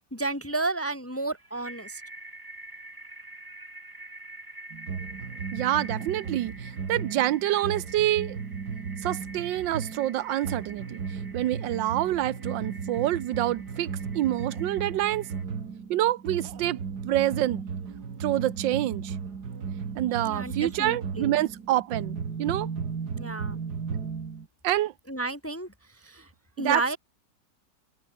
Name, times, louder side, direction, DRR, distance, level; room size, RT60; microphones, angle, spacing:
voice 1, 0.1-2.0 20.2-21.3 23.1-23.6 25.1-25.7 26.0-26.3 26.6-27.0, right 2 dB, 10° left, 1.0 m, -31 dB
sound 1, 1.1-15.4, right 2 dB, 10° right, 1.8 m, -47 dB
sound 2, 4.7-24.5, right 6 dB, 60° right, 2.6 m, -35 dB
voice 2, 5.5-8.4 9.0-11.0 11.3-15.2 15.9-17.6 18.2-19.1 20.0-22.7 24.6-24.9 26.6-27.0, right 14 dB, 85° right, 1.4 m, -27 dB
open air
omnidirectional pair, 2.0 m